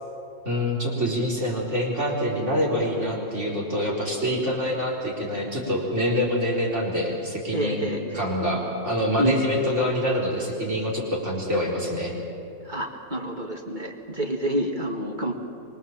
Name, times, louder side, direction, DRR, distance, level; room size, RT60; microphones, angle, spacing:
voice 1, 0.4-7.9 8.1-12.1, equal, 65° right, -2 dB, 4.6 m, -26 dB
voice 2, 7.5-8.3 9.2-9.4 12.6-15.3, equal, 35° right, 2 dB, 2.0 m, -28 dB
27.0 x 23.5 x 7.4 m, 2.5 s
omnidirectional pair, 1.4 m